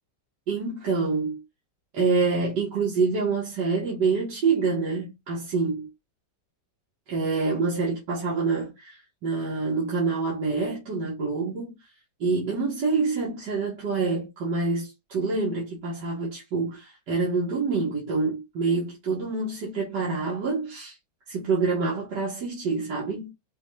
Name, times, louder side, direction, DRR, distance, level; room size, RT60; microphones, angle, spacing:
voice 1, 0.5-1.4 1.9-5.9 7.1-11.8 12.2-21.0 21.3-23.3, right 4 dB, 75° right, 2.2 m, -26 dB
6.0 x 2.4 x 3.2 m
omnidirectional pair, 1.9 m